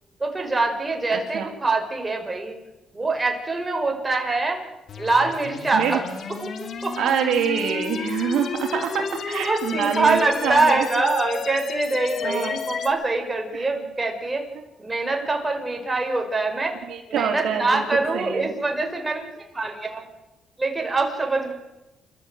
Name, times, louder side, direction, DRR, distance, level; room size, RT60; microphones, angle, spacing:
voice 1, 0.2-2.6 2.9-4.6 5.0-6.0 6.4-7.0 8.9-14.5 14.8-16.8 17.1-20.0 20.6-21.5, right 3 dB, 20° right, 3 dB, 5.6 m, -24 dB
voice 2, 1.1-1.4 5.7-6.0 7.0-10.8 12.2-12.6 13.5-13.7 16.9-17.8 18.1-18.5, right 8 dB, 75° right, 3 dB, 3.4 m, -26 dB
sound 1, 4.9-12.9, left 5 dB, 55° left, 2.7 m, -32 dB
28.5 x 14.0 x 9.3 m, 1.0 s
cardioid pair, 95°, 0 cm